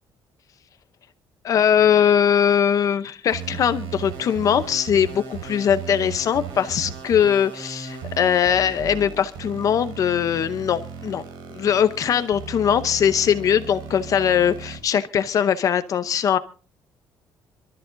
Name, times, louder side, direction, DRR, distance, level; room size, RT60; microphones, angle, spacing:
voice 1, 1.4-11.2 11.5-16.4, left 8 dB, 45° left, 11 dB, 0.7 m, -21 dB
sound 1, 3.3-14.8, right 6 dB, 90° right, 4.6 m, -36 dB
26.5 x 13.0 x 2.6 m, 0.38 s
cardioid pair, 155°, 8 cm